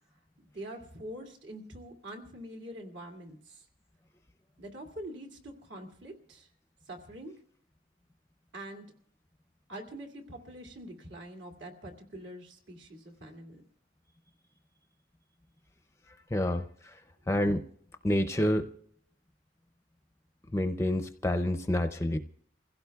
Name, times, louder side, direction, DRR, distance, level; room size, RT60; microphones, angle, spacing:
voice 1, 0.5-3.6 4.6-6.5 6.9-7.3 8.5-8.8 9.7-13.6, right 1 dB, 75° right, 3 dB, 2.5 m, -44 dB
voice 2, 16.3-16.9 17.3-17.6 18.0-18.7 20.5-22.2, left 1 dB, 15° left, 7 dB, 0.5 m, -28 dB
29.0 x 16.0 x 2.3 m, 0.66 s
head